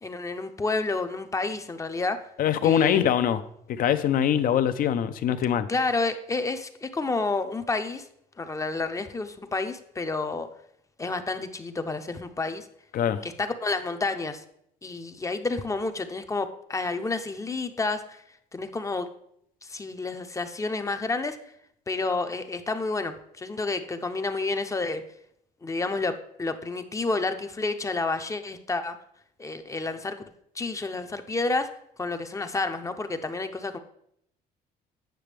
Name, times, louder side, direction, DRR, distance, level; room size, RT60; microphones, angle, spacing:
voice 1, 0.0-2.2 2.6-3.0 5.7-8.1 8.4-10.5 11.0-12.7 13.2-14.4 14.8-18.2 18.5-19.1 19.6-21.4 21.9-25.0 25.6-29.0 29.4-30.2 30.5-31.7 32.0-33.8, left 3 dB, 20° left, 8 dB, 0.6 m, -30 dB
voice 2, 2.4-3.4 3.7-5.7 12.9-13.2, left 9 dB, 55° left, 11 dB, 0.6 m, -23 dB
9.0 x 5.9 x 3.3 m, 0.72 s
cardioid pair, 110°, 17 cm